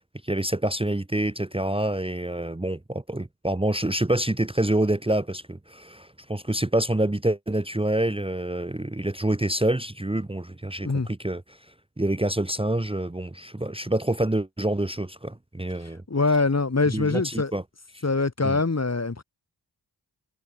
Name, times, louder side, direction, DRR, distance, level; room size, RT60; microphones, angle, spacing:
voice 1, 0.2-16.0 16.9-17.6 17.9-18.0 18.4-18.6, right 1 dB, 15° right, 1.1 m, -27 dB
voice 2, 16.1-17.5 18.0-19.2, left 3 dB, 35° left, 2.0 m, -23 dB
wide cardioid pair, 60°, 42 cm